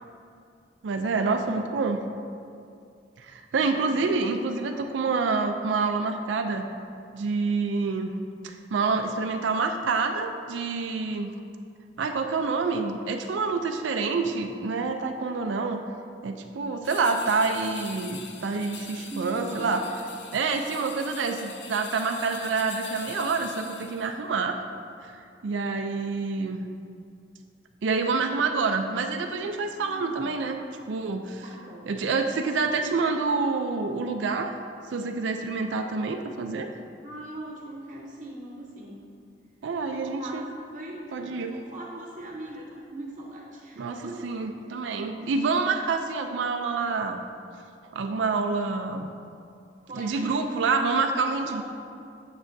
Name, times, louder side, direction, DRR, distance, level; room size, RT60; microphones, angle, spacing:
voice 1, 0.8-2.0 3.2-6.7 7.1-8.1 8.4-11.3 12.0-15.8 16.2-19.8 20.3-24.6 25.0-25.1 25.4-26.6 27.8-31.4 31.9-34.6 34.9-36.7 39.6-40.4 41.1-41.6 43.8-47.2 47.9-49.1 49.9-51.6, right 4 dB, 80° right, 5 dB, 0.4 m, -27 dB
voice 2, 3.5-4.0 19.1-19.7 29.7-30.3 31.4-32.0 37.0-39.1 39.9-40.5 40.7-44.3 49.8-50.8 51.5-51.6, right 1 dB, 45° right, -3 dB, 0.8 m, -40 dB
sound 1, 16.8-24.1, left 6 dB, 70° left, 0.6 m, -43 dB
8.7 x 7.0 x 2.6 m, 2.4 s
head